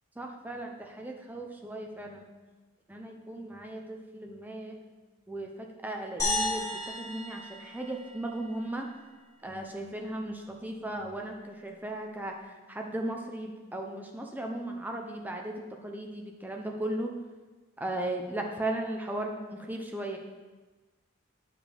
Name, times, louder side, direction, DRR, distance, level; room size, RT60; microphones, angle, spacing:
voice 1, 0.2-2.3 2.9-4.8 5.3-8.9 9.4-15.5 15.8-17.1 17.8-20.2, right 1 dB, 10° right, 1 dB, 0.6 m, -36 dB
sound 1, 6.2-8.6, left 2 dB, 15° left, 2.4 m, -33 dB
9.4 x 5.0 x 5.0 m, 1.3 s
head